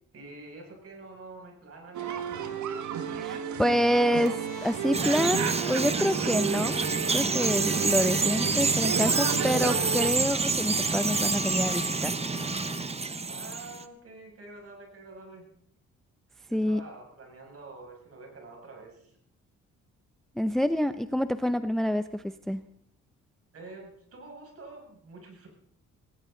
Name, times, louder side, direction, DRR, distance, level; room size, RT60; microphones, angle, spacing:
voice 1, 0.1-2.4 13.3-15.5 16.5-19.2 23.5-25.5, right 3 dB, 50° right, 1 dB, 6.5 m, -47 dB
sound 1, 1.9-10.1, right 8 dB, 75° right, 1.8 m, -33 dB
voice 2, 3.1-6.8 7.1-12.2 16.5-16.8 20.4-22.6, equal, ahead, 12 dB, 0.6 m, -27 dB
sound 2, 4.2-13.4, left 4 dB, 20° left, 2.2 m, -44 dB
Bird vocalization bird call bird song, 4.9-13.8, right 4 dB, 20° right, 1.0 m, -28 dB
18.0 x 18.0 x 3.9 m, 0.67 s
cardioid pair, 90°, 30 cm